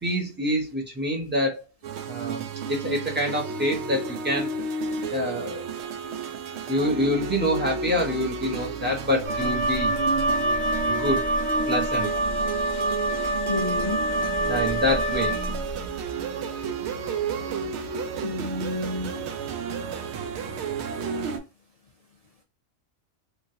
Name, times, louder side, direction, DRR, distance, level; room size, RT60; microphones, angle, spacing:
voice 1, 0.0-1.6 2.1-2.4 2.7-4.5 5.1-5.6 6.7-9.9 11.0-11.2 11.7-12.1 14.5-15.4, equal, 10° right, 0.8 m, -26 dB
sound 1, 1.8-21.4, right 5 dB, 70° right, 0.8 m, -32 dB
Wind instrument woodwind instrument, 9.2-15.8, right 1 dB, 45° right, 1.1 m, -26 dB
voice 2, 13.5-14.0 18.2-19.1, left 2 dB, 60° left, 0.4 m, -30 dB
3.1 x 2.5 x 2.7 m
omnidirectional pair, 1.2 m